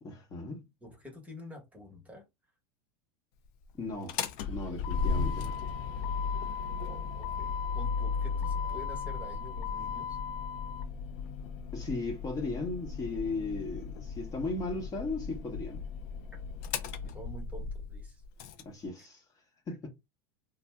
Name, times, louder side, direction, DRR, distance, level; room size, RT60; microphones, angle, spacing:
voice 1, 0.0-0.7 3.8-4.2 4.5-5.6 11.7-15.8 18.6-19.2 19.7-19.9, left 3 dB, 25° left, 0.9 m, -36 dB
voice 2, 0.8-2.2 6.8-10.2 17.0-18.2, left 1 dB, 10° right, 1.0 m, -48 dB
Motor vehicle (road), 3.9-18.6, left 5 dB, 55° left, 0.5 m, -35 dB
2.6 x 2.1 x 3.3 m
supercardioid pair, 115°, 14 cm